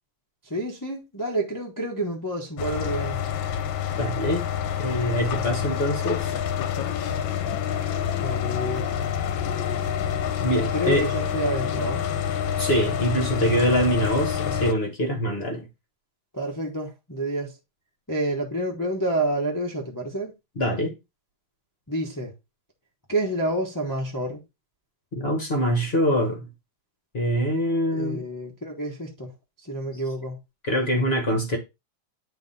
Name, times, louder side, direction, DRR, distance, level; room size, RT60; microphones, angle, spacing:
voice 1, 0.4-3.2 8.1-8.9 10.7-12.0 16.3-17.5 18.1-20.3 21.9-22.3 23.1-24.4 27.9-29.3 29.6-30.4 31.3-31.4, right 1 dB, 20° left, 0.6 m, -29 dB
sound 1, 2.6-14.7, left 9 dB, 75° left, 1.4 m, -27 dB
voice 2, 4.0-4.5 4.8-6.3 10.4-11.1 12.6-15.7 20.6-20.9 25.1-26.5 27.1-28.2 30.6-31.6, equal, 40° left, 1.0 m, -24 dB
8.9 x 3.2 x 4.0 m
omnidirectional pair, 2.3 m